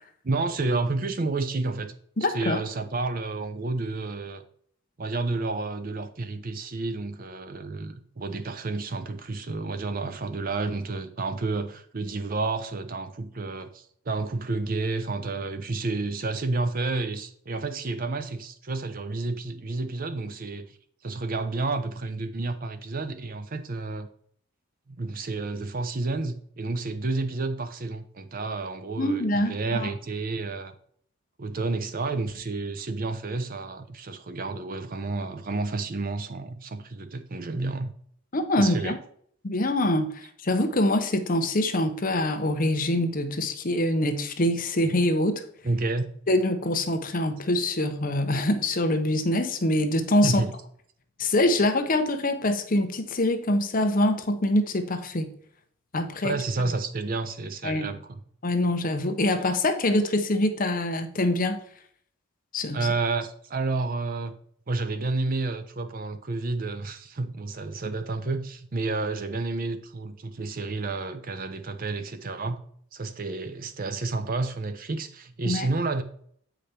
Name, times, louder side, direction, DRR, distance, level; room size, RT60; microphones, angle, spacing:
voice 1, 0.2-1.9 2.3-4.4 5.0-20.7 21.0-24.1 24.9-30.7 31.4-37.9 38.6-39.0 45.6-46.0 50.2-50.5 56.2-58.2 62.7-64.3 64.7-72.6 72.9-76.0, right 3 dB, 40° right, 0.6 m, -30 dB
voice 2, 2.2-2.6 29.0-29.9 38.3-39.0 39.4-45.4 46.3-50.4 51.2-55.3 55.9-56.4 57.6-57.9 58.4-61.6 62.5-62.9 75.5-75.7, left 1 dB, 40° left, 0.7 m, -24 dB
8.0 x 5.0 x 4.3 m
head